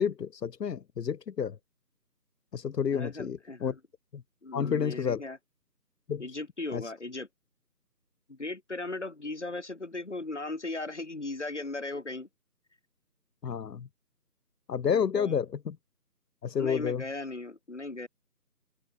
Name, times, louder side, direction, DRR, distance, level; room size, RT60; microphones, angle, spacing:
voice 1, 0.0-1.6 2.5-3.7 4.1-4.2 4.5-5.2 6.1-6.2 6.7-6.8 13.4-13.9 14.7-15.8 16.4-17.0, left 7 dB, 80° left, 0.6 m, -30 dB
voice 2, 2.9-3.8 4.4-5.4 6.2-7.3 8.3-12.3 14.9-15.4 16.6-18.1, left 2 dB, 45° left, 2.5 m, -37 dB
open air
figure-of-eight pair, 170°, 48 cm